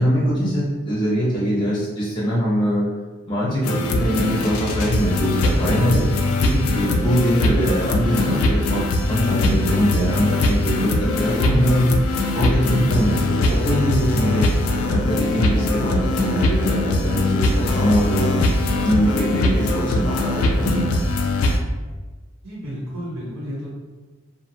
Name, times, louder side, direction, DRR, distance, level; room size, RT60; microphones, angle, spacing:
voice 1, 0.0-2.9 3.3-6.1 6.4-8.8 9.1-11.9 12.3-14.5 14.9-20.9, equal, 20° left, -7 dB, 0.5 m, -22 dB
sound 1, 3.6-21.6, left 2 dB, 75° left, 0.3 m, -21 dB
voice 2, 14.3-14.8 22.4-23.7, equal, 80° right, -8 dB, 1.0 m, -32 dB
2.6 x 2.1 x 2.8 m, 1.3 s
head